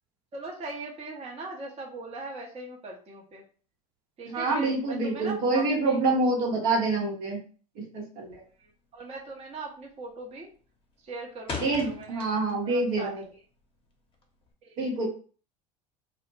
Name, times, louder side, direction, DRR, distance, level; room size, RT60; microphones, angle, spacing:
voice 1, 0.3-3.4 4.2-6.0 6.6-6.7 8.6-10.5 11.0-12.3 12.6-13.4 14.6-14.8, right 2 dB, 30° right, -1 dB, 0.7 m, -40 dB
voice 2, 4.3-7.4 7.8-8.4 11.6-13.1 14.8-15.1, right 2 dB, 60° right, 0 dB, 0.9 m, -26 dB
sound 1, 8.2-8.6 8.9-9.3 9.6-10.1 10.4-12.7 13.0-14.5, left 4 dB, 25° left, 0.7 m, -39 dB
2.1 x 2.0 x 3.1 m, 0.40 s
hypercardioid pair, 75°, 20 cm